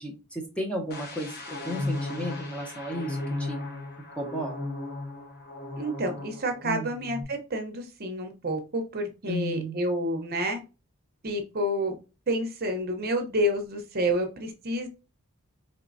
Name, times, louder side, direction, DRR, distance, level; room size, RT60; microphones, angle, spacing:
voice 1, 0.0-3.7 4.2-4.6 6.6-6.9 9.3-9.8, equal, 5° left, 0 dB, 0.6 m, -34 dB
sound 1, 0.9-6.6 6.9-7.2, left 2 dB, 45° left, 1.0 m, -35 dB
voice 2, 5.8-10.6 11.2-12.0 12.3-14.9, equal, 45° right, 5 dB, 0.8 m, -29 dB
4.5 x 3.0 x 2.6 m, 0.30 s
head